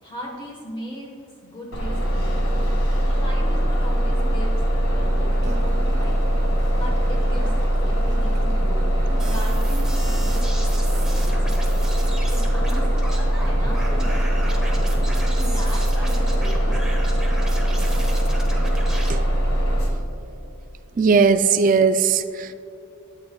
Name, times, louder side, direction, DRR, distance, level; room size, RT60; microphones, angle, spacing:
voice 1, 0.0-1.1 1.4-2.7 3.0-4.5 4.9-6.2 6.7-11.9 12.3-12.9 13.4-14.9 15.3-18.1, equal, 25° left, -2 dB, 1.2 m, -38 dB
Bus, 1.7-19.9, equal, 80° left, 1.7 m, -21 dB
sound 1, 5.4-16.4, right 1 dB, 55° right, 1.7 m, -42 dB
sound 2, 9.2-19.1, right 1 dB, 5° right, 1.1 m, -36 dB
voice 2, 21.0-22.5, right 5 dB, 40° right, 10 dB, 0.3 m, -18 dB
12.5 x 8.7 x 2.3 m, 2.8 s
head